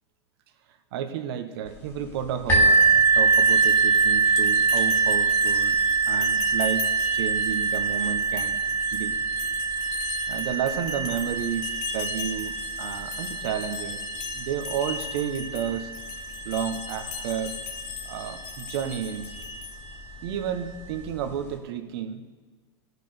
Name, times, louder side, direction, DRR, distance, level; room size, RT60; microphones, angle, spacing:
voice 1, 0.9-8.6 8.9-9.2 10.3-14.0 14.3-15.9 16.4-17.6 18.0-19.3 20.2-22.2, right 8 dB, 65° right, 8 dB, 1.5 m, -31 dB
sound 1, 2.5-20.0, left 5 dB, 50° left, 1.7 m, -38 dB
sound 2, 2.5-18.0 18.8-18.9 19.5-19.6, right 5 dB, 20° left, 2.7 m, -24 dB
17.5 x 6.6 x 6.9 m, 1.4 s
supercardioid pair, 140°, 14 cm